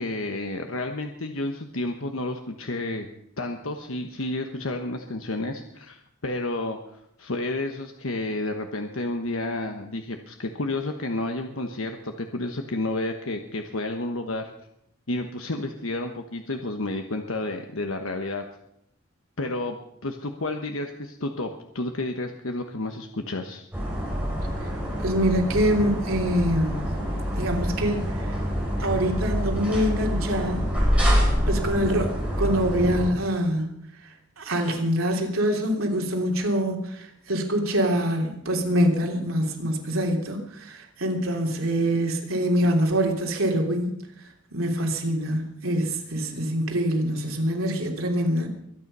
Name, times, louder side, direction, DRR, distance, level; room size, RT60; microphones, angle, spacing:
voice 1, 0.0-3.1 3.4-14.5 15.1-18.4 19.4-23.7, left 2 dB, 80° left, 5 dB, 1.2 m, -31 dB
sound 1, 23.7-33.1, equal, 5° right, 5.8 m, -26 dB
voice 2, 25.0-26.9 27.3-28.3 28.8-30.7 31.5-33.9 34.4-43.9 44.5-48.5, equal, 90° right, 1 dB, 3.3 m, -25 dB
23.5 x 9.4 x 5.5 m, 0.74 s
head